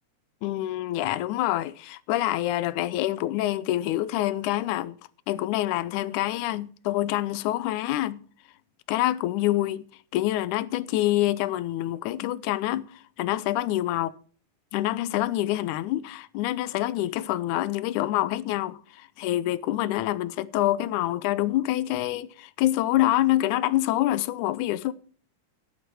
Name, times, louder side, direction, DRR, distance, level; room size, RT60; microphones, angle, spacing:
voice 1, 0.4-5.0 5.3-8.2 8.9-9.8 10.1-14.1 14.7-24.9, left 15 dB, 80° left, 2.1 m, -26 dB
11.0 x 11.0 x 4.7 m
omnidirectional pair, 3.5 m